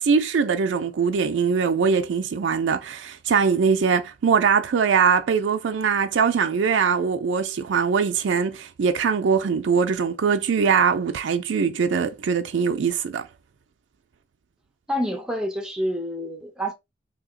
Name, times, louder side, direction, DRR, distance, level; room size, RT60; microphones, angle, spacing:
voice 1, 0.0-13.3, right 6 dB, 85° right, 0.4 m, -22 dB
voice 2, 14.9-16.7, equal, 5° right, 0.8 m, -28 dB
2.9 x 2.8 x 3.7 m
head